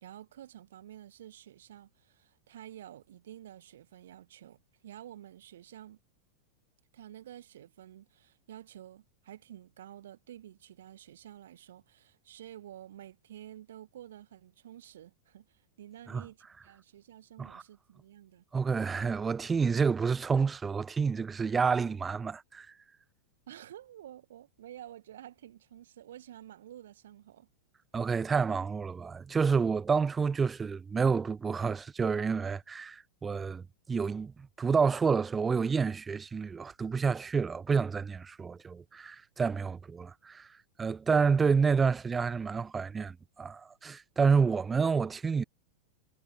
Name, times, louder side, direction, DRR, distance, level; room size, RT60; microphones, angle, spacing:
voice 1, 0.0-6.0 6.9-18.4 23.5-27.5, right 11 dB, 60° right, 2.0 m, -50 dB
voice 2, 18.5-22.7 27.9-34.3 34.6-40.5 40.8-45.4, right 5 dB, 15° right, 0.8 m, -29 dB
figure-of-eight pair, 90°, 0 cm